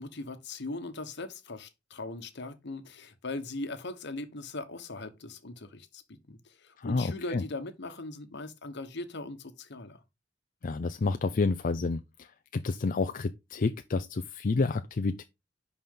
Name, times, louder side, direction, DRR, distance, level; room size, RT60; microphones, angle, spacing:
voice 1, 0.0-10.0, left 2 dB, 60° left, 1.2 m, -40 dB
voice 2, 6.8-7.4 10.6-15.2, left 3 dB, 45° left, 0.5 m, -29 dB
10.5 x 4.2 x 3.8 m
head